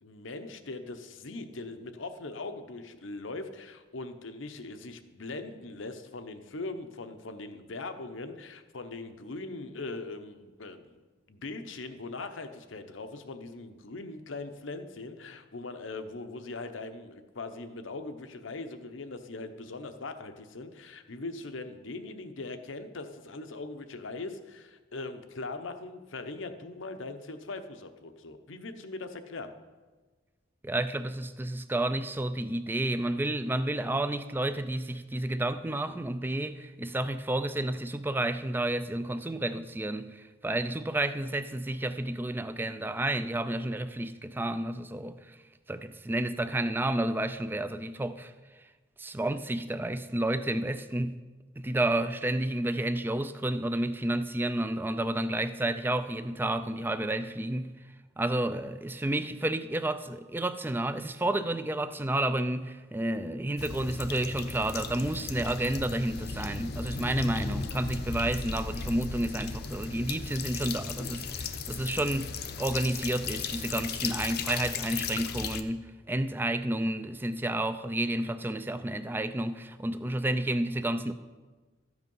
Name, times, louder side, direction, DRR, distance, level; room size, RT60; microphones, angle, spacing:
voice 1, 0.0-29.5, left 3 dB, 80° left, 0.9 m, -40 dB
voice 2, 30.6-45.4 45.7-48.3 49.0-51.2 51.6-57.7 58.2-81.1, right 1 dB, 10° right, 0.4 m, -31 dB
sound 1, 63.6-75.6, left 4 dB, 55° left, 0.7 m, -36 dB
13.0 x 8.0 x 5.5 m
head